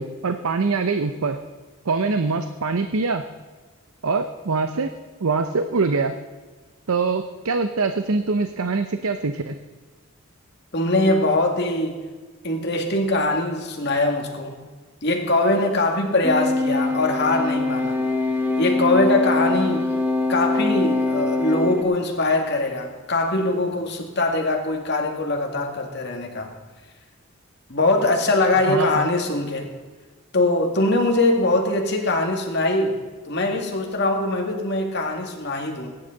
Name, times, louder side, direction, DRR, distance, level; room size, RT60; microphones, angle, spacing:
voice 1, 0.0-1.4 1.9-3.2 4.0-4.9 5.2-6.1 6.9-9.5 28.7-29.1, right 4 dB, 85° right, 8 dB, 0.7 m, -23 dB
voice 2, 10.7-11.9 12.4-14.6 15.0-18.0 18.6-19.9 20.3-26.6 27.7-29.7 30.3-33.0 33.3-35.9, left 2 dB, 50° left, 2 dB, 2.1 m, -22 dB
sound 1, 16.2-21.8, left 2 dB, 10° right, 0.9 m, -23 dB
21.5 x 10.5 x 4.0 m, 1.4 s
head